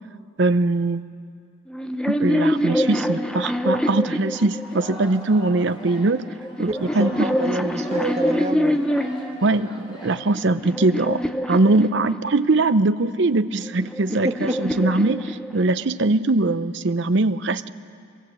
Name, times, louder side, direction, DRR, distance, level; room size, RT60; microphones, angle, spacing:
voice 1, 0.4-1.0 2.1-6.3 6.6-7.4 8.0-8.2 9.4-17.7, right 2 dB, 55° right, 13 dB, 0.6 m, -21 dB
sound 1, 1.7-5.1 6.0-9.4 10.0-12.5 13.5-15.9, equal, 5° left, 0.8 m, -25 dB
Singing, 4.3-10.8, equal, 25° left, 4.1 m, -41 dB
voice 2, 6.6-8.8 14.2-14.5, right 1 dB, 30° right, 4 dB, 1.4 m, -28 dB
24.5 x 22.0 x 8.0 m, 2.2 s
head